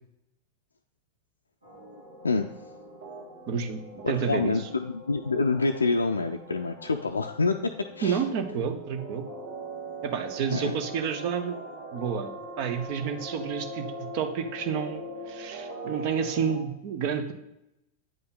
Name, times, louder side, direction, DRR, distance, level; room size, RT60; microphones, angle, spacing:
sound 1, 1.6-16.5, right 1 dB, 75° right, 2.3 m, -41 dB
voice 1, 2.2-2.7 4.0-8.2 10.5-10.8, left 3 dB, 75° left, 4 dB, 0.4 m, -27 dB
voice 2, 3.5-4.7 8.0-9.2 10.0-11.6 11.9-12.3 12.6-13.9 14.1-17.3, right 7 dB, 45° right, 8 dB, 0.9 m, -30 dB
8.9 x 5.5 x 3.9 m, 0.87 s
figure-of-eight pair, 90°, 0 cm